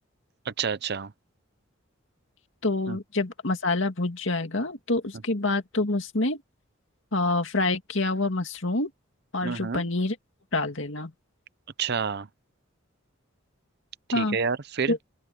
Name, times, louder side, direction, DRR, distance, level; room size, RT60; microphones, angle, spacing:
voice 1, 0.5-1.1 2.9-3.0 9.4-9.8 11.8-12.3 14.1-15.0, right 6 dB, 55° right, 0.7 m, -29 dB
voice 2, 2.6-6.4 7.1-8.9 9.3-10.2 10.5-11.1 14.1-14.4 14.9-15.0, left 2 dB, 65° left, 2.4 m, -27 dB
open air
head